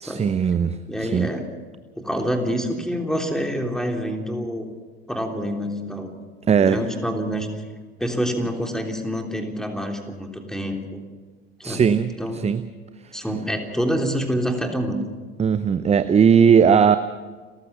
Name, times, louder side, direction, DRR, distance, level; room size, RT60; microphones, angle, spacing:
voice 1, 0.0-1.3 6.5-6.8 11.6-12.6 15.4-17.0, right 7 dB, 20° right, 13 dB, 0.7 m, -18 dB
voice 2, 0.9-1.5 1.9-4.7 5.1-6.1 6.6-7.5 8.0-11.0 11.6-12.5 13.1-15.0, equal, ahead, 3 dB, 3.3 m, -27 dB
30.0 x 14.5 x 6.1 m, 1.4 s
figure-of-eight pair, 65°, 32 cm